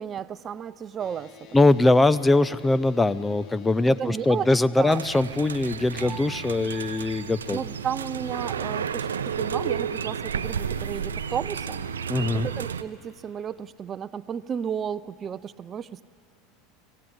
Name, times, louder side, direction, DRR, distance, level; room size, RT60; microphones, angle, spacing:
voice 1, 0.0-1.3 3.9-4.5 4.8-5.0 6.0-6.1 7.5-11.9 12.3-16.0, right 8 dB, 35° right, 16 dB, 0.5 m, -33 dB
sound 1, 1.0-12.5, left 5 dB, 45° left, 1.5 m, -48 dB
voice 2, 1.5-7.6 12.1-12.5, left 2 dB, 15° left, 17 dB, 0.6 m, -21 dB
sound 2, 4.0-8.4 8.7-8.8, right 2 dB, 10° right, 4.1 m, -49 dB
sound 3, 4.9-12.8, right 7 dB, 85° right, 0.6 m, -32 dB
25.5 x 15.5 x 8.7 m, 2.4 s
hypercardioid pair, 80°, 0 cm